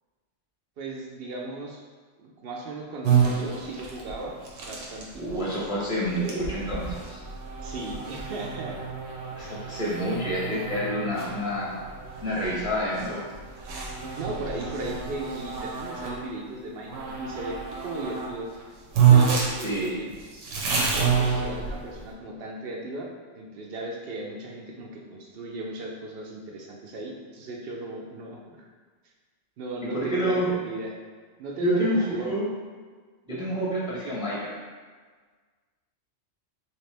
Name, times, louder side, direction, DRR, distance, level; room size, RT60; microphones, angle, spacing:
voice 1, 0.8-1.8 2.2-4.3 4.6-5.4 7.6-8.8 14.1-18.5 19.1-20.1 20.7-28.7 29.6-31.0 31.4-32.3, right 2 dB, 65° right, -1 dB, 0.7 m, -36 dB
sound 1, 3.0-16.2 16.9-18.3 18.6-18.7 18.9-22.0, right 7 dB, 85° right, 1.0 m, -27 dB
voice 2, 5.2-7.2 9.4-11.8 12.2-13.2 19.6-20.0 29.9-30.5 31.6-32.5 33.3-34.5, equal, 5° right, -6 dB, 0.5 m, -28 dB
3.2 x 2.8 x 3.2 m, 1.5 s
omnidirectional pair, 1.2 m